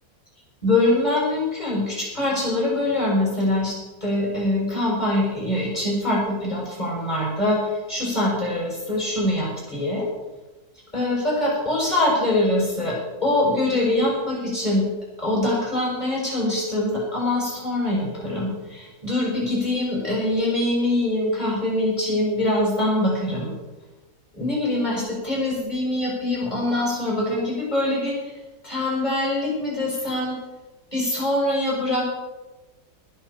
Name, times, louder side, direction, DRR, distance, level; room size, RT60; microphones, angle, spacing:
voice 1, 0.6-10.1 10.9-13.0 13.2-14.9 15.2-23.5 24.3-28.2 28.6-30.4 30.9-32.0, left 1 dB, 25° left, -4 dB, 6.8 m, -23 dB
20.0 x 7.4 x 7.4 m, 1.1 s
omnidirectional pair, 1.8 m